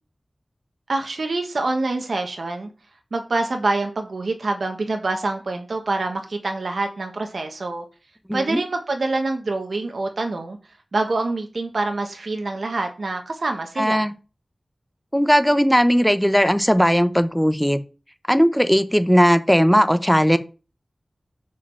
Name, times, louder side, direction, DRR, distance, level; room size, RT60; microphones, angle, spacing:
voice 1, 0.9-2.7 3.1-7.8 8.3-10.6 10.9-14.1, right 2 dB, 80° right, 4 dB, 1.3 m, -26 dB
voice 2, 8.3-8.6 13.8-14.1 15.1-17.8 18.3-20.4, equal, ahead, 12 dB, 0.8 m, -17 dB
6.6 x 5.1 x 5.7 m, 0.33 s
wide cardioid pair, 65°, 0 cm